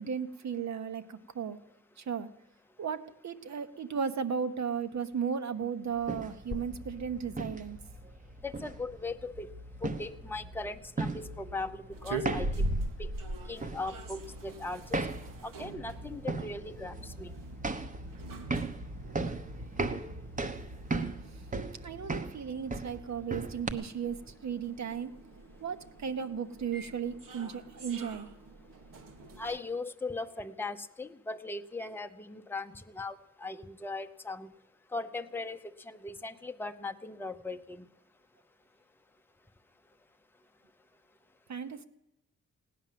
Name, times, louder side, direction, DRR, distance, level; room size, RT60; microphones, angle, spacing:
voice 1, 0.0-1.6 2.0-2.3 2.8-7.8 21.8-25.1 25.6-28.3 41.5-41.8, right 7 dB, 60° right, 10 dB, 1.1 m, -35 dB
sound 1, 5.9-23.7, right 3 dB, 25° right, 1.0 m, -38 dB
sound 2, 6.5-10.4, left 4 dB, 40° left, 1.0 m, -48 dB
voice 2, 8.4-9.5 9.8-12.7 13.0-13.1 13.5-15.0 15.4-17.3 29.4-34.5 34.9-37.8, left 3 dB, 5° left, 7 dB, 0.7 m, -39 dB
sound 3, 11.9-29.6, right 1 dB, 85° right, 1.6 m, -42 dB
17.5 x 10.0 x 7.6 m, 0.91 s
wide cardioid pair, 125°, 32 cm